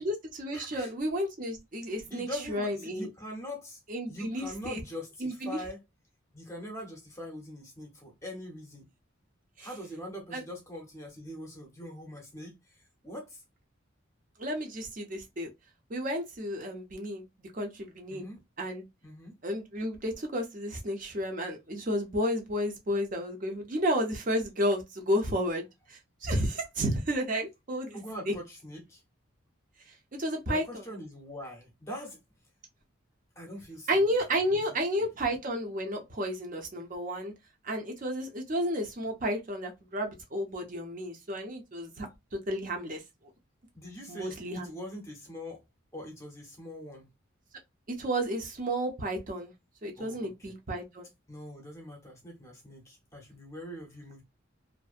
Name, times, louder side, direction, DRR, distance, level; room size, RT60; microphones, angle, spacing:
voice 1, 0.0-3.1 3.9-4.8 5.2-5.6 9.6-9.7 10.3-10.4 14.4-15.5 15.9-18.2 18.6-18.8 19.4-28.0 28.3-28.4 30.2-30.8 33.9-37.3 37.6-42.1 42.3-43.0 44.1-44.7 47.9-49.5 49.8-51.1, equal, 40° right, 0.6 m, -32 dB
voice 2, 0.5-0.9 2.1-3.8 4.1-5.8 6.3-8.9 9.6-13.4 18.1-18.4 19.0-19.4 27.9-29.0 30.5-32.2 33.4-34.0 34.5-35.1 43.7-45.6 45.9-47.1 50.0-50.5 51.3-54.2, equal, 15° left, 0.7 m, -43 dB
2.6 x 2.1 x 2.4 m
head